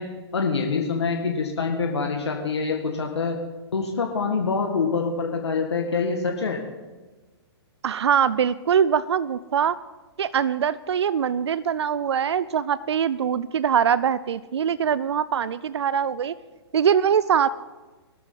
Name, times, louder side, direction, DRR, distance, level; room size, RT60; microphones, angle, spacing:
voice 1, 0.0-3.4 3.7-6.6, left 4 dB, 80° left, 2 dB, 1.9 m, -25 dB
voice 2, 7.8-9.8 10.2-16.3 16.7-17.5, right 8 dB, 80° right, 18 dB, 0.5 m, -22 dB
20.0 x 12.5 x 4.0 m, 1.2 s
hypercardioid pair, 125°, 14 cm